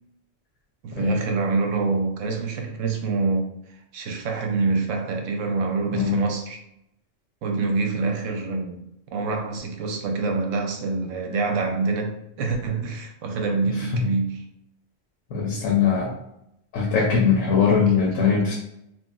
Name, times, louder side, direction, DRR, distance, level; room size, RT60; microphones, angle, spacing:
voice 1, 0.8-3.5 3.9-6.6 7.4-8.8 9.1-14.4, right 4 dB, 85° right, 0.9 m, -26 dB
voice 2, 5.9-6.2 13.9-14.0 15.3-16.1 16.7-18.5, left 6 dB, 85° left, 1.0 m, -21 dB
2.9 x 2.7 x 2.2 m
omnidirectional pair, 1.3 m